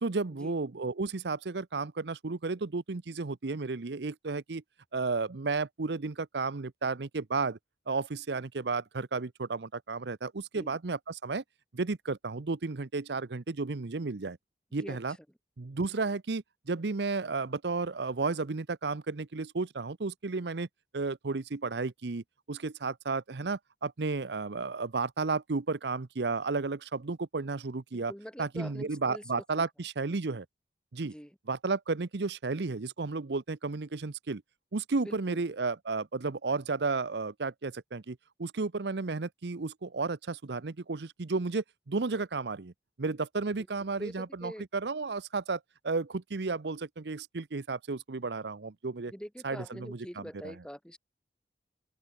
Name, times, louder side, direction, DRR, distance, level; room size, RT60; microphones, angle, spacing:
voice 1, 0.0-4.6 4.9-7.6 7.9-11.4 11.7-14.4 14.7-15.2 15.6-20.7 20.9-28.1 28.4-30.5 30.9-31.1 31.5-34.4 34.7-42.7 43.0-49.1 49.4-50.5, right 3 dB, 80° right, 0.8 m, -33 dB
voice 2, 14.8-15.2 27.9-29.2 31.0-31.4 35.0-35.4 44.0-44.7 49.1-51.0, equal, 5° left, 6.1 m, -44 dB
head